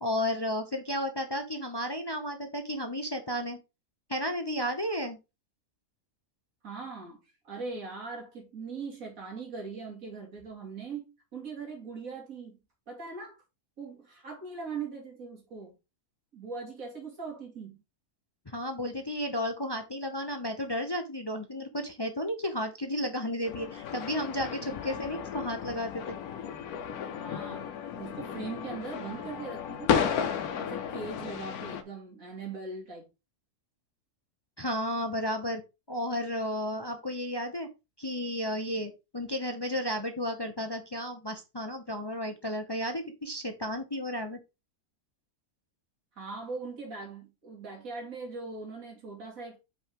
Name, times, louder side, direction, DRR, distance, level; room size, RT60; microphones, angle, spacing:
voice 1, 0.0-3.6 4.1-5.2 18.5-26.2 34.6-35.6 35.9-37.7 38.0-44.4, left 1 dB, 35° left, 0.4 m, -33 dB
voice 2, 6.6-7.2 7.4-12.6 12.9-13.4 13.8-15.7 16.3-17.8 27.1-30.2 30.6-33.1 46.2-49.6, right 4 dB, 60° right, 2.7 m, -40 dB
sound 1, 23.4-31.8, left 8 dB, 75° left, 1.3 m, -33 dB
5.5 x 5.5 x 3.5 m
omnidirectional pair, 1.6 m